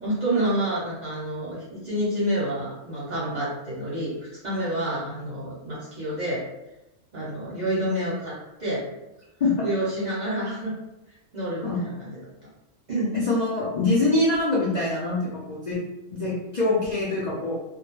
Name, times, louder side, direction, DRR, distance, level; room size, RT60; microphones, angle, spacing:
voice 1, 0.0-4.2 4.4-6.5 7.1-8.9 9.6-10.7 11.3-12.2 12.9-13.1, right 1 dB, 45° right, -8 dB, 0.6 m, -28 dB
voice 2, 13.1-15.8 16.1-17.5, left 2 dB, 55° left, -7 dB, 0.4 m, -24 dB
2.2 x 2.0 x 3.0 m, 0.94 s
omnidirectional pair, 1.3 m